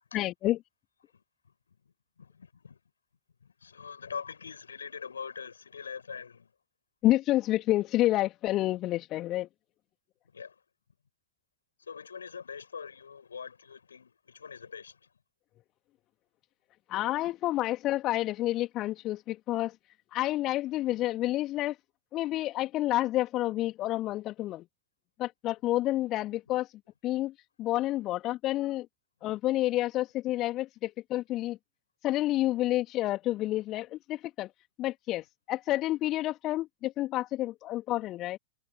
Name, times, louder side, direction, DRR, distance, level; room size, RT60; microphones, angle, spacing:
voice 1, 0.1-0.6 7.0-9.5 16.9-19.7 20.1-21.8 22.1-24.6 25.2-26.7 27.0-27.3 27.6-28.9 29.2-31.6 32.0-34.5 34.8-38.4, left 15 dB, 35° left, 2.8 m, -29 dB
voice 2, 2.2-2.8 3.4-6.5 10.3-10.5 11.8-15.0, left 6 dB, 70° left, 6.7 m, -43 dB
figure-of-eight pair, 90°, 0 cm